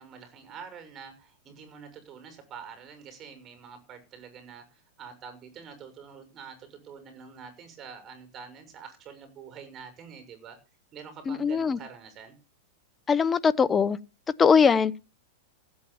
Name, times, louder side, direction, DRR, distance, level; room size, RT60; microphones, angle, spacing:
voice 1, 0.0-10.6 10.9-12.4, right 6 dB, 30° right, 6.3 m, -46 dB
voice 2, 11.3-11.8 13.1-14.0 14.4-15.0, left 6 dB, 20° left, 0.8 m, -21 dB
15.5 x 8.8 x 7.1 m
hypercardioid pair, 130°, 0 cm